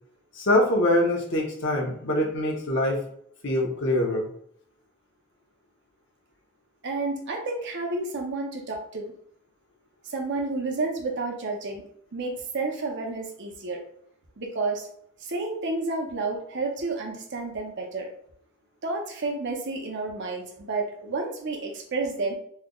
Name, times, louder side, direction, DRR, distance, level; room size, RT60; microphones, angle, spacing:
voice 1, 0.4-3.0 3.4-4.3, left 1 dB, 60° left, 0 dB, 0.9 m, -24 dB
voice 2, 6.8-9.1 10.0-11.8 12.1-13.8 14.4-14.9 15.2-18.1 18.8-22.3, right 3 dB, 55° right, 2 dB, 0.8 m, -30 dB
3.2 x 2.1 x 3.8 m, 0.65 s
head